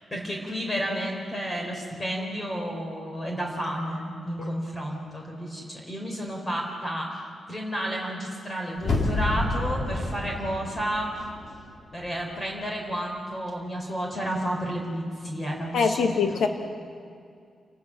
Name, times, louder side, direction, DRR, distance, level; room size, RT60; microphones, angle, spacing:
voice 1, 0.1-7.2 7.5-11.1 11.9-16.5, equal, 20° left, 0 dB, 4.2 m, -31 dB
sound 1, 8.8-11.7 12.1-12.2, left 2 dB, 55° left, 3.9 m, -29 dB
voice 2, 15.7-16.5, left 5 dB, 85° left, 4 dB, 1.9 m, -23 dB
29.5 x 19.0 x 6.2 m, 2.3 s
wide cardioid pair, 140°, 0 cm